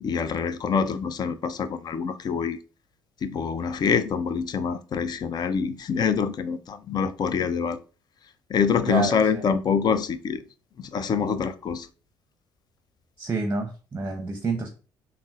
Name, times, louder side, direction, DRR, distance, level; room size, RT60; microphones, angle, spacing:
voice 1, 0.0-2.6 3.2-7.8 8.5-10.4 10.8-11.9, left 6 dB, 45° left, 0.4 m, -25 dB
voice 2, 8.8-9.2 13.2-14.7, right 3 dB, 25° right, 0.7 m, -28 dB
3.6 x 2.0 x 2.4 m
hypercardioid pair, 55°, 10 cm